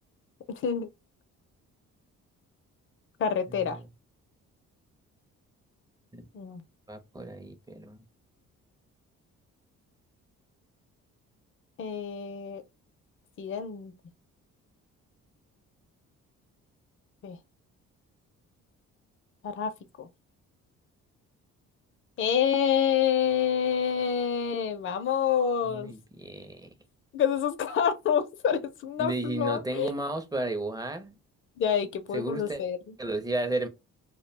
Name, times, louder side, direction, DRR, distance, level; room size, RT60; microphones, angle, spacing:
voice 1, 0.5-0.9 3.2-3.8 6.3-6.6 11.8-12.6 13.4-13.9 17.2-17.4 19.4-19.7 20.0-20.1 22.2-25.9 27.1-29.9 31.6-32.8, left 8 dB, 45° left, 0.5 m, -27 dB
voice 2, 3.5-3.9 6.1-6.3 6.9-8.0 25.6-26.7 29.0-31.2 32.1-32.6 33.0-33.7, right 2 dB, 15° right, 0.6 m, -33 dB
2.2 x 2.2 x 3.1 m
cardioid pair, 90°, 30 cm